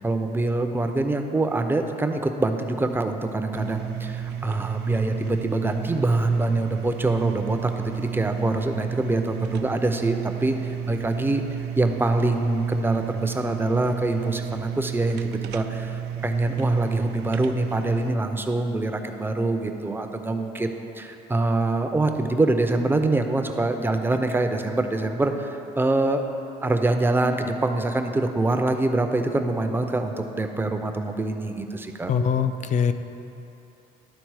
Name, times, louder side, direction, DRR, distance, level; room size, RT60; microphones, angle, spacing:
voice 1, 0.0-11.4 11.8-26.2 26.6-32.1, right 2 dB, 10° right, 6 dB, 0.5 m, -25 dB
sound 1, 3.5-18.1, right 9 dB, 80° right, 0.4 m, -32 dB
voice 2, 32.1-32.9, left 6 dB, 45° left, 10 dB, 0.4 m, -22 dB
11.5 x 4.0 x 4.7 m, 2.9 s
cardioid pair, 110°, 17 cm